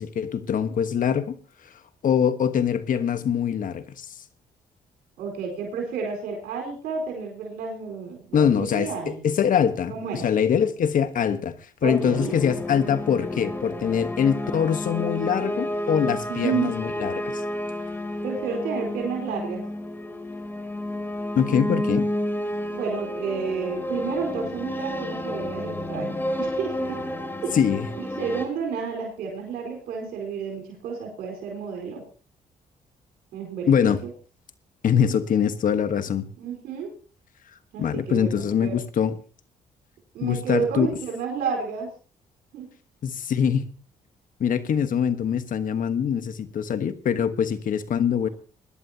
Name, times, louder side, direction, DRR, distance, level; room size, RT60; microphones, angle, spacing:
voice 1, 0.0-1.4 2.0-4.1 8.3-17.4 21.3-22.1 27.5-27.9 33.7-34.0 34.8-36.3 37.8-39.2 40.2-40.9 43.0-43.7 44.4-48.3, left 8 dB, 60° left, 1.3 m, -23 dB
voice 2, 5.2-9.2 9.9-10.3 11.8-12.3 16.3-16.7 18.2-19.6 22.7-27.0 27.4-27.6 28.0-32.0 33.3-33.9 36.4-36.9 37.7-38.8 40.1-41.9 42.5-42.7, right 6 dB, 85° right, 4.4 m, -31 dB
sound 1, 11.8-28.4, left 1 dB, 15° left, 3.1 m, -31 dB
21.0 x 11.0 x 2.9 m
supercardioid pair, 60°, 15 cm